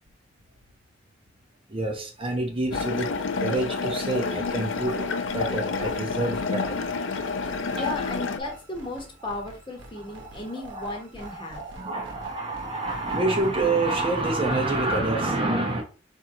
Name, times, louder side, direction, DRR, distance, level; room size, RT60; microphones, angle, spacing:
voice 1, 1.7-3.1 3.4-5.1 5.3-6.9 7.4-8.0 8.4-8.5 10.2-10.3 10.7-10.9 11.2-15.8, right 2 dB, 30° right, 2 dB, 0.8 m, -27 dB
sound 1, 2.7-8.4, left 4 dB, 80° left, 0.5 m, -29 dB
sound 2, 4.2-15.0, right 1 dB, 65° right, 0.9 m, -48 dB
voice 2, 7.4-11.8, left 1 dB, 25° left, 0 dB, 1.1 m, -36 dB
4.5 x 2.7 x 3.7 m, 0.36 s
head